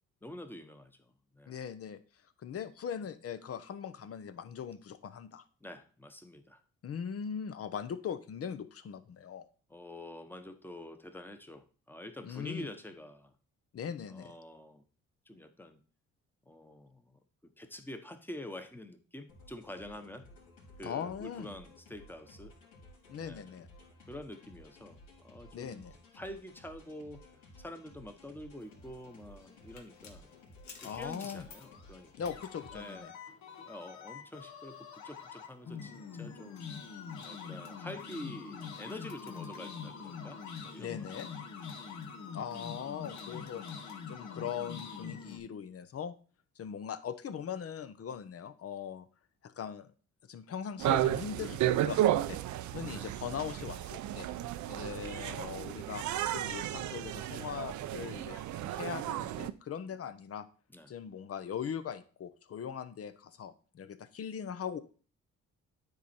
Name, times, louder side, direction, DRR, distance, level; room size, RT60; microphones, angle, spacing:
voice 1, 0.2-0.9 1.3-1.7 5.6-6.6 9.7-13.3 14.1-14.8 15.3-15.8 16.5-17.2 17.6-20.3 20.8-22.5 23.2-23.5 24.1-25.9 26.1-27.2 27.6-30.3 30.8-32.3 32.7-33.2 33.7-36.7 37.2-41.1 52.9-53.1 54.1-54.7 59.8-60.0 60.7-60.9, left 1 dB, 5° left, 8 dB, 1.1 m, -47 dB
voice 2, 1.5-2.0 2.4-5.4 6.8-9.5 12.2-12.7 13.7-14.3 20.8-21.5 23.1-23.7 25.5-25.9 30.8-31.5 32.2-33.1 40.8-41.3 42.3-46.1 46.6-49.1 49.4-49.9 50.3-51.6 51.9-52.4 52.7-54.3 54.7-60.5 60.9-64.8, left 8 dB, 50° left, 13 dB, 0.8 m, -40 dB
sound 1, 19.3-33.0, left 1 dB, 90° left, 3.5 m, -56 dB
sound 2, 29.1-45.4, left 6 dB, 70° left, 1.4 m, -45 dB
sound 3, 50.8-59.5, right 12 dB, 75° right, 0.6 m, -33 dB
9.3 x 4.1 x 4.4 m, 0.39 s
cardioid pair, 90°, 30 cm